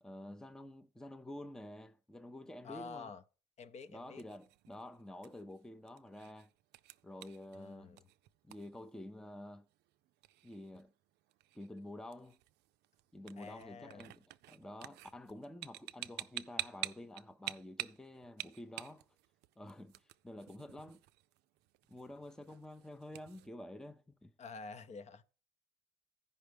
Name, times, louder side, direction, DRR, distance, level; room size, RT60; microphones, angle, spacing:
voice 1, 0.0-3.1 3.9-6.5 7.0-8.0 8.4-9.7 10.4-10.9 11.5-12.4 13.1-19.0 19.6-21.0 21.9-24.3, left 1 dB, 5° left, 0.5 m, -49 dB
voice 2, 2.6-3.2 3.6-4.2 7.5-8.0 13.4-14.1 24.4-25.2, left 4 dB, 40° left, 0.7 m, -49 dB
sound 1, 3.9-23.5, right 16 dB, 80° right, 0.4 m, -49 dB
14.5 x 5.4 x 3.4 m
cardioid pair, 110°, 17 cm